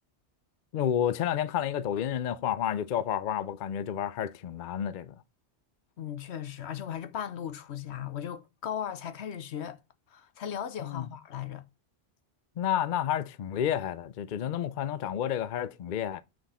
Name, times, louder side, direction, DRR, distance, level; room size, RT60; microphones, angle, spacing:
voice 1, 0.7-5.1 10.8-11.1 12.6-16.2, left 10 dB, 55° left, 0.6 m, -30 dB
voice 2, 6.0-9.8 10.1-11.6, left 9 dB, 75° left, 1.0 m, -37 dB
7.6 x 6.0 x 4.2 m
omnidirectional pair, 1.2 m